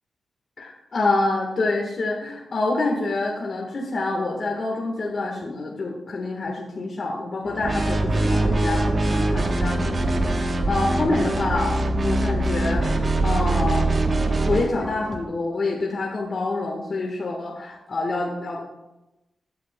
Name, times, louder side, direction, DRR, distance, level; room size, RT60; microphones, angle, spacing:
voice 1, 0.6-13.9 14.4-18.6, left 2 dB, 55° left, -1 dB, 1.4 m, -27 dB
sound 1, 7.4-15.3, left 2 dB, 30° left, 1.2 m, -37 dB
sound 2, 7.6-14.7, right 2 dB, 45° right, 1.0 m, -22 dB
13.5 x 8.5 x 2.2 m, 0.98 s
cardioid pair, 90°, 0 cm